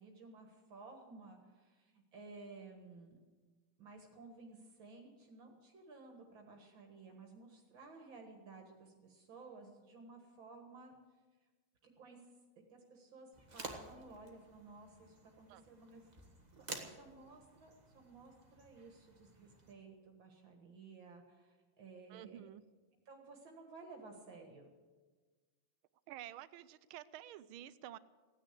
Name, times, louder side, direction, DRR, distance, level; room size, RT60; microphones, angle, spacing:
voice 1, 0.0-3.2 3.8-11.0 11.8-12.2 12.7-16.0 16.7-22.4 23.1-24.7, right 3 dB, 70° right, 3 dB, 2.3 m, -55 dB
sound 1, 13.3-19.7, right 2 dB, 20° right, 1.5 m, -52 dB
voice 2, 22.1-22.6 26.1-28.0, right 12 dB, 90° right, 16 dB, 1.5 m, -50 dB
16.5 x 10.0 x 8.2 m, 1.4 s
omnidirectional pair, 2.2 m